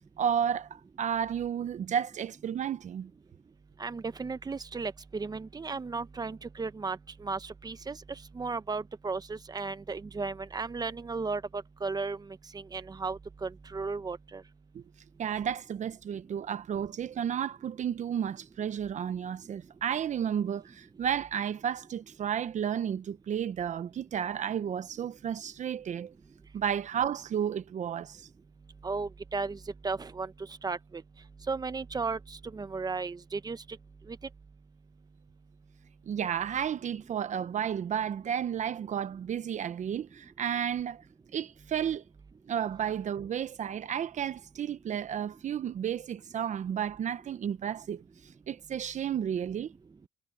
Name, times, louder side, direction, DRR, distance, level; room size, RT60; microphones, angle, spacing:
voice 1, 0.2-3.1 14.7-14.8 15.2-26.1 26.5-28.3 36.0-41.0 41.3-42.0 42.5-49.7, right 8 dB, 45° right, 1.0 m, -32 dB
voice 2, 3.8-8.0 8.3-12.2 12.5-14.4 28.8-29.6 29.8-30.3 30.6-31.0 31.5-32.2 32.5-33.6 34.1-34.2, right 4 dB, 25° right, 1.0 m, -35 dB
cardioid pair, 110°, 17 cm